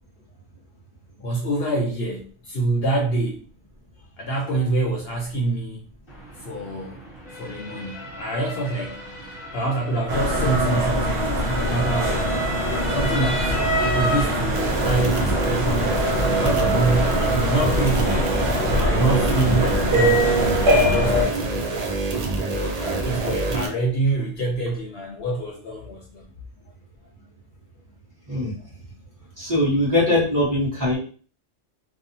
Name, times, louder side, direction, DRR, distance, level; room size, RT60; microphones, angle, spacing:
voice 1, 1.2-3.4 4.2-5.8 6.4-7.0 7.3-9.0 9.5-12.3 12.9-13.5 13.8-18.4 18.7-21.7 22.5-26.3, right 2 dB, 65° left, 0 dB, 0.7 m, -26 dB
Motor vehicle (road) / Siren, 6.1-23.5, right 1 dB, 30° left, 0.7 m, -35 dB
sound 1, 10.1-21.3, equal, 60° right, 1.0 m, -22 dB
sound 2, 14.5-23.7, right 3 dB, 80° right, 0.3 m, -26 dB
voice 2, 29.4-31.0, left 1 dB, 15° right, -8 dB, 1.1 m, -21 dB
2.7 x 2.1 x 2.7 m, 0.41 s
omnidirectional pair, 1.3 m